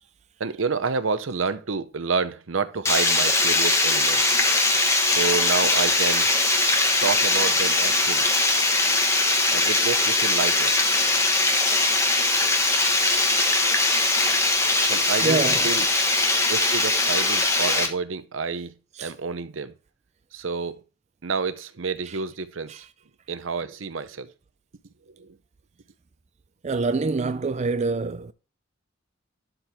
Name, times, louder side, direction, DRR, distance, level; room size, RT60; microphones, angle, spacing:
voice 1, 0.4-4.2 5.0-6.3 7.0-8.3 9.5-10.7 14.1-14.2 14.9-15.4 15.6-15.9 16.5-19.7 20.3-20.8 21.2-22.8 23.3-24.3 25.2-25.3, right 5 dB, 80° right, 0.8 m, -29 dB
Water, 2.9-17.9, left 2 dB, 15° left, 1.2 m, -21 dB
voice 2, 15.2-15.7 18.9-19.1 22.0-22.2 22.7-22.9 26.6-28.3, right 3 dB, 35° right, 0.4 m, -26 dB
12.0 x 4.6 x 3.4 m
head